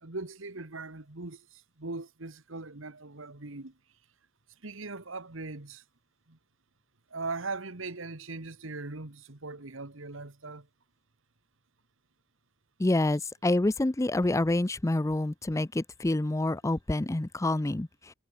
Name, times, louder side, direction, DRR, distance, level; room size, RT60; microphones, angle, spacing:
voice 1, 0.0-3.7 4.6-5.8 6.3-6.4 7.1-10.7, right 3 dB, 75° right, 1.8 m, -40 dB
voice 2, 12.8-18.1, left 2 dB, 15° left, 0.5 m, -27 dB
head